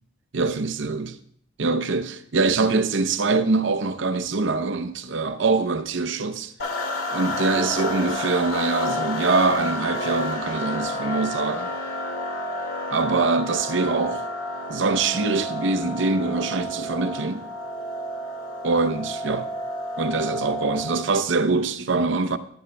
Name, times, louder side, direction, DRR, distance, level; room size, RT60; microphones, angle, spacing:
voice 1, 0.3-1.1 1.6-6.5 7.1-11.7 12.9-14.3 14.7-17.5 18.6-19.5 20.0-22.4, right 3 dB, 65° right, 0.7 m, -24 dB
sound 1, 6.6-21.1, left 1 dB, 85° left, 1.9 m, -30 dB
21.5 x 10.0 x 2.2 m
head